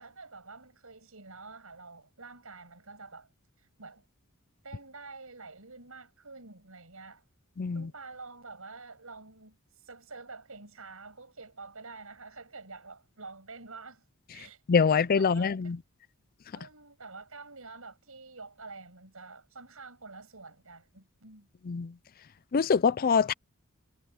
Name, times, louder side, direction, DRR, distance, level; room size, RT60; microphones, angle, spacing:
voice 1, 0.0-3.3 3.6-4.0 4.6-7.2 7.7-9.6 9.8-14.1 14.3-14.6 14.9-15.7 16.5-21.5, right 3 dB, 70° right, 7.5 m, -48 dB
voice 2, 7.6-7.9 14.7-15.8 21.7-21.9 22.5-23.3, left 5 dB, 40° left, 0.4 m, -24 dB
head